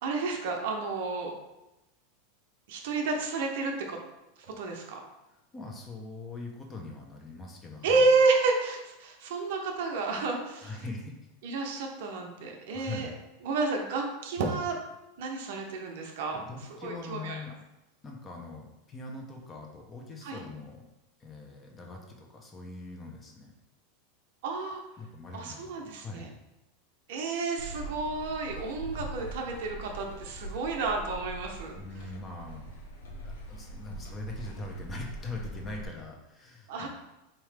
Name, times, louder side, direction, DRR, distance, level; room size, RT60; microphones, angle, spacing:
voice 1, 0.0-1.3 2.7-4.0 4.6-5.0 7.8-10.7 11.4-13.1 13.4-14.8 15.2-16.4 16.8-17.4 20.2-20.4 24.4-24.8 25.3-26.3 27.1-31.7 36.7-36.9, right 3 dB, 65° right, 2 dB, 0.7 m, -30 dB
voice 2, 5.5-8.1 10.6-11.2 12.7-13.1 16.3-17.7 18.0-20.8 21.2-23.5 25.0-26.4 31.6-32.7 33.1-36.9, left 2 dB, 25° left, 1 dB, 0.9 m, -42 dB
sound 1, 27.6-35.9, right 2 dB, 80° left, 0.7 m, -42 dB
3.7 x 2.9 x 3.3 m, 0.98 s
hypercardioid pair, 95°, 0 cm